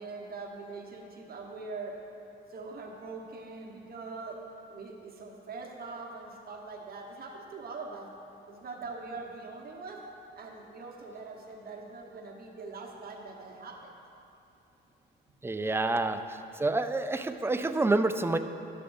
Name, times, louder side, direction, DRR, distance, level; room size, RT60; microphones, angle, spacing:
voice 1, 0.0-2.0 2.5-4.4 4.7-8.1 8.5-10.0 10.3-13.9, right 3 dB, 50° right, 0 dB, 1.2 m, -42 dB
voice 2, 15.4-16.2 16.6-18.4, right 2 dB, 10° right, 9 dB, 0.4 m, -27 dB
12.0 x 6.5 x 2.7 m, 2.8 s
cardioid pair, 90°, 20 cm